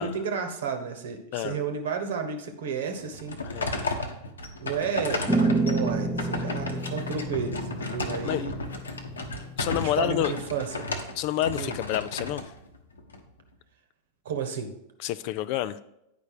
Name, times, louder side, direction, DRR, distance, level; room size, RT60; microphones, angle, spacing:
voice 1, 0.0-3.4 4.6-8.5 9.7-10.9 11.6-11.8 14.2-14.7, right 6 dB, 60° right, 6 dB, 1.2 m, -32 dB
sound 1, 3.0-13.2, left 2 dB, 75° left, 1.0 m, -34 dB
voice 2, 3.4-4.0 8.2-8.4 9.6-10.3 11.2-12.4 15.0-15.8, left 13 dB, 45° left, 16 dB, 0.4 m, -29 dB
sound 2, 5.3-10.3, right 2 dB, ahead, 0.7 m, -30 dB
9.4 x 5.3 x 4.8 m, 0.83 s
figure-of-eight pair, 90°, 0 cm